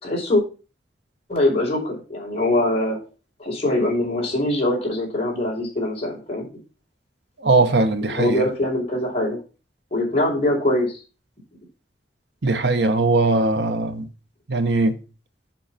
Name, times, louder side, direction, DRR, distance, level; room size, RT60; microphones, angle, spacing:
voice 1, 0.0-0.4 1.3-3.0 3.4-6.5 8.1-9.4 9.9-11.0, left 1 dB, 35° left, 4.6 m, -22 dB
voice 2, 7.4-8.4 12.4-14.1 14.5-14.9, right 3 dB, 70° right, 1.0 m, -20 dB
7.7 x 5.5 x 5.8 m
head